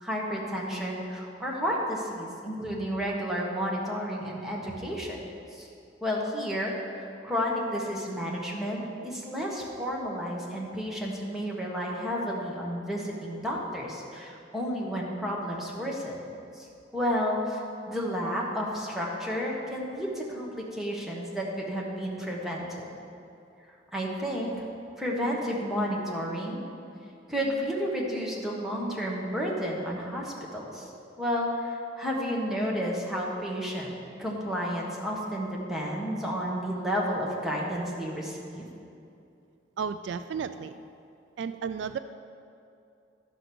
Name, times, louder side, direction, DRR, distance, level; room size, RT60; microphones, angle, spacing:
voice 1, 0.0-5.2 5.5-5.7 6.0-16.2 16.6-16.7 16.9-22.8 23.9-24.6 25.0-26.6 27.3-30.9 31.2-38.7, equal, ahead, -4 dB, 1.4 m, -31 dB
voice 2, 39.8-40.8 41.4-42.0, right 6 dB, 70° right, 12 dB, 0.3 m, -33 dB
12.0 x 5.2 x 6.0 m, 2.6 s
head